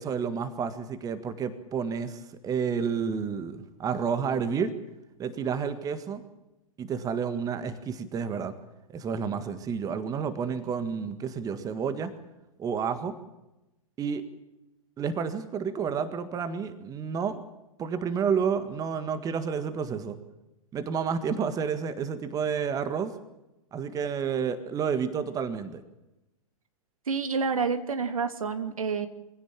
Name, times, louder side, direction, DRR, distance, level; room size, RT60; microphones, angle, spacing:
voice 1, 0.0-4.7 5.2-6.2 6.8-8.5 8.9-12.1 12.6-13.1 14.0-14.2 15.0-17.4 17.8-20.2 20.7-23.1 23.7-25.8, right 6 dB, 20° right, 11 dB, 1.7 m, -30 dB
voice 2, 27.1-29.1, right 5 dB, 70° right, 8 dB, 2.7 m, -28 dB
24.5 x 16.5 x 9.0 m, 0.95 s
figure-of-eight pair, 110°, 18 cm